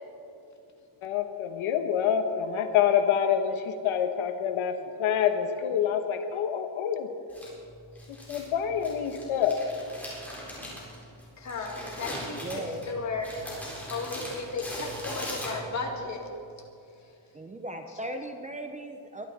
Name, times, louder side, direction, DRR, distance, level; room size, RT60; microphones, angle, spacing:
voice 1, 1.0-7.1 8.1-9.6, left 8 dB, 80° left, 7 dB, 1.2 m, -27 dB
Crumpling crinkling, 7.3-15.9, equal, 5° left, 4.0 m, -40 dB
voice 2, 11.4-16.2, left 3 dB, 35° left, 1 dB, 2.2 m, -35 dB
voice 3, 12.4-12.9 17.3-19.3, right 1 dB, 15° right, 5 dB, 0.6 m, -37 dB
22.5 x 11.0 x 4.1 m, 2.6 s
cardioid pair, 160°, 48 cm